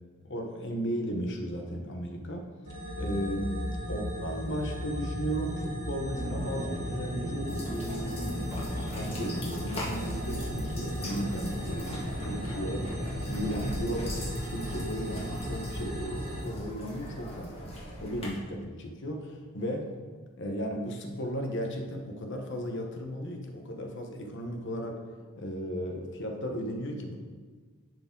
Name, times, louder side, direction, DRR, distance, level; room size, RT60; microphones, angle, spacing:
voice 1, 0.2-2.5 3.0-3.6 3.9-8.5 8.8-12.9 13.2-14.1 14.4-17.7 18.0-19.9 20.4-25.0 25.3-27.2, equal, 55° left, 3 dB, 1.1 m, -35 dB
sound 1, 2.7-16.4, equal, 75° right, 2.2 m, -36 dB
sound 2, 6.1-13.9, equal, 10° right, 2.1 m, -40 dB
sound 3, 7.5-18.3, equal, 25° left, 1.8 m, -41 dB
10.5 x 4.9 x 3.9 m, 1.5 s
head